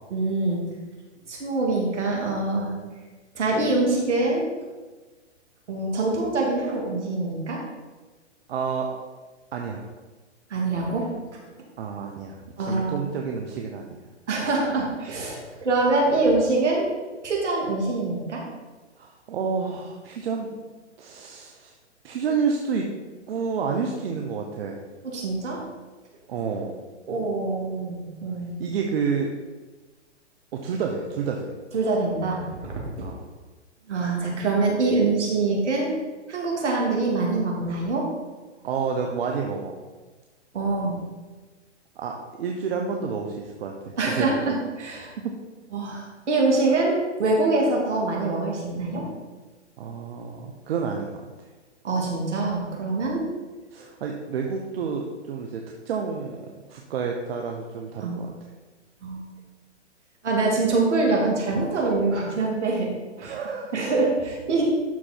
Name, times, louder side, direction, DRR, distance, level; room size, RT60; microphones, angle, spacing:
voice 1, 0.1-0.6 1.3-2.7 3.3-4.4 5.7-7.6 10.5-11.1 12.6-13.1 14.3-16.9 17.2-18.4 25.0-25.6 27.1-28.7 31.7-32.9 33.9-35.9 36.3-38.1 40.5-40.9 44.0-45.1 45.7-46.9 47.2-49.0 51.8-53.2 58.0-58.1 59.0-59.2 60.2-62.9 63.2-63.3 63.7-64.6, right 3 dB, 70° right, -2 dB, 3.0 m, -24 dB
voice 2, 8.5-8.9 9.5-9.8 11.8-14.0 15.4-15.6 19.0-20.5 21.0-21.7 22.0-22.9 23.3-24.8 26.3-26.8 28.6-29.3 30.5-31.5 33.0-33.2 38.6-39.8 42.0-44.5 45.2-45.3 49.8-51.3 53.7-58.3 63.2-63.8, right 5 dB, 55° right, 1 dB, 1.1 m, -29 dB
12.0 x 4.4 x 4.5 m, 1.3 s
hypercardioid pair, 130°, 36 cm